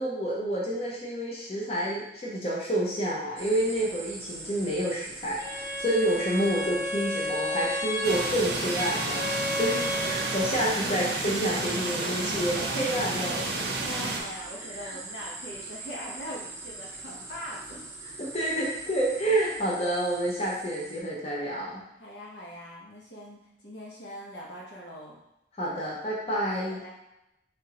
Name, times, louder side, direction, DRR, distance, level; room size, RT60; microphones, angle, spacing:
voice 1, 0.0-9.2 9.6-13.7 14.8-15.0 18.2-21.8 25.6-26.8, right 1 dB, 35° left, -5 dB, 0.7 m, -29 dB
sound 1, 3.4-21.0, right 2 dB, 15° right, 0.5 m, -43 dB
Bowed string instrument, 5.4-10.5, left 1 dB, 60° left, 0.9 m, -32 dB
sound 2, 8.0-14.2, right 2 dB, 65° right, 0.6 m, -31 dB
voice 2, 13.8-17.8 22.0-25.2 26.8-27.0, equal, 85° left, -4 dB, 1.2 m, -41 dB
3.7 x 3.4 x 2.9 m, 0.86 s
head